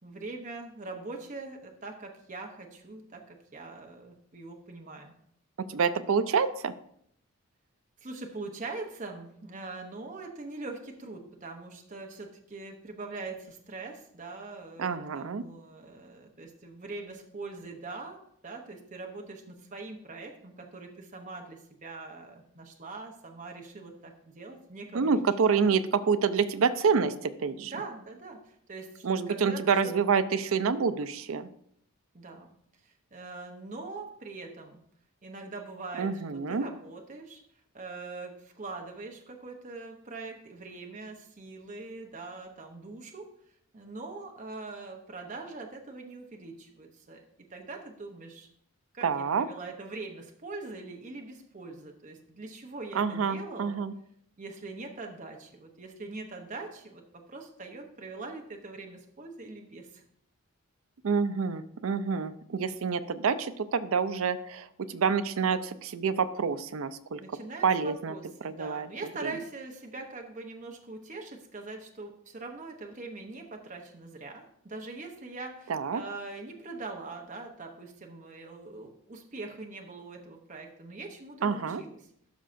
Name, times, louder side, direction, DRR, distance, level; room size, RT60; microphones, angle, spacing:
voice 1, 0.0-5.1 8.0-25.4 25.6-25.8 27.6-29.9 32.1-32.5 32.8-34.8 35.2-37.4 37.7-43.3 43.7-48.5 48.9-53.8 54.4-60.0 67.2-82.1, right 3 dB, 35° right, 2 dB, 0.8 m, -42 dB
voice 2, 5.7-6.7 14.8-15.4 24.9-27.7 29.0-31.5 36.0-36.7 49.0-49.5 52.9-53.9 61.0-67.2 67.6-68.1 68.4-68.9 75.7-76.0 81.4-81.8, right 5 dB, 70° right, 12 dB, 0.5 m, -27 dB
12.5 x 5.5 x 2.6 m, 0.69 s
head